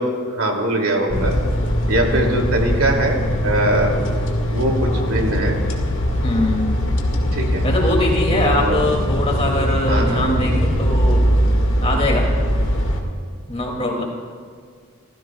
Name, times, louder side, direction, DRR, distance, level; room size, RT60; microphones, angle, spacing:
voice 1, 0.0-1.3 1.9-4.0 4.5-5.6 7.3-7.6 8.3-8.8 9.9-10.2, right 1 dB, 80° right, 0 dB, 2.8 m, -21 dB
sound 1, 1.1-13.0, equal, 60° left, 2.0 m, -20 dB
voice 2, 1.9-2.3 4.9-5.1 6.2-6.8 7.6-11.3 11.8-12.3 13.5-14.0, left 1 dB, 30° left, 0 dB, 2.6 m, -22 dB
29.0 x 15.5 x 2.4 m, 2.1 s
head